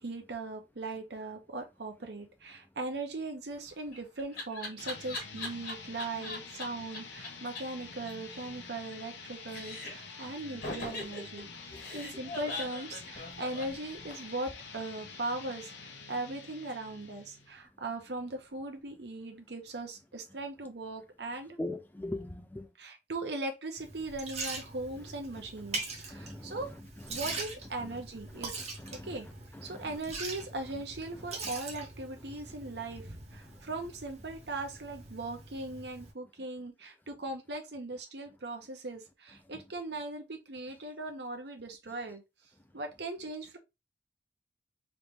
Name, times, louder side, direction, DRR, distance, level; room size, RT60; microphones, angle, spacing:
voice 1, 0.0-21.6 22.8-26.7 27.1-28.7 29.0-29.3 29.6-42.2 42.7-43.6, right 2 dB, 65° right, 0.8 m, -39 dB
Laughter, 3.5-6.6 6.9-7.0 7.2-7.3 7.6-7.7 7.9-9.2 9.5-10.1 10.6-14.4, left 2 dB, 50° left, 1.5 m, -41 dB
sound 1, 4.8-17.6, left 5 dB, 80° left, 0.8 m, -48 dB
voice 2, 21.6-22.7 26.1-26.6 27.1-27.2 28.8-29.1 29.7-29.8, left 1 dB, 10° left, 0.3 m, -39 dB
Liquid, 23.8-36.1, right 3 dB, 35° right, 0.8 m, -43 dB
3.3 x 2.6 x 3.0 m
head